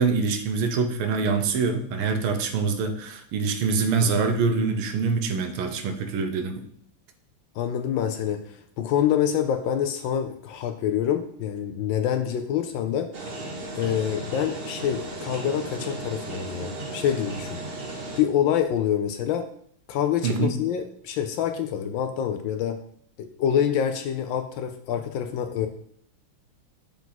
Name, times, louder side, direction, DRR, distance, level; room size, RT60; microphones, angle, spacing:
voice 1, 0.0-6.6 20.2-20.6, right 4 dB, 85° right, 7 dB, 1.7 m, -25 dB
voice 2, 7.6-13.1 13.8-17.6 18.2-19.5 19.9-22.8 23.2-25.7, left 9 dB, 75° left, 8 dB, 1.2 m, -26 dB
sound 1, 13.1-18.2, right 2 dB, 40° right, 0.9 m, -35 dB
6.8 x 4.6 x 3.9 m, 0.65 s
omnidirectional pair, 2.4 m